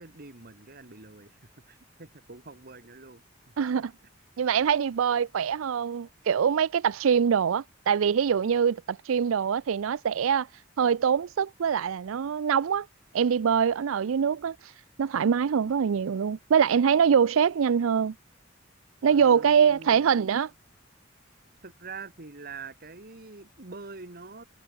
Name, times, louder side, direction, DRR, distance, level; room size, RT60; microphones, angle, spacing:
voice 1, 0.0-1.4 1.7-3.2 19.1-20.2 21.6-24.4, right 4 dB, 50° right, 2.1 m, -44 dB
voice 2, 3.6-3.9 4.4-10.5 10.8-12.9 13.1-14.7 15.0-18.1 19.0-20.5, right 7 dB, 85° right, 0.4 m, -24 dB
head